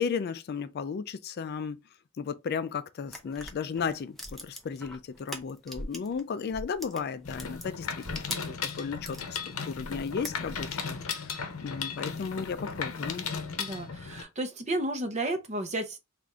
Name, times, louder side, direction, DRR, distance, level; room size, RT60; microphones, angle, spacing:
voice 1, 0.0-1.8 2.2-7.9 8.2-11.3 11.6-13.3, left 6 dB, 50° left, 0.3 m, -34 dB
sound 1, 3.1-6.2 6.5-9.3 9.7-10.8, equal, ahead, 0.6 m, -42 dB
Mechanisms, 7.2-14.2, left 6 dB, 75° left, 0.7 m, -36 dB
voice 2, 13.6-16.0, right 1 dB, 30° right, 0.8 m, -32 dB
3.6 x 2.5 x 4.1 m
head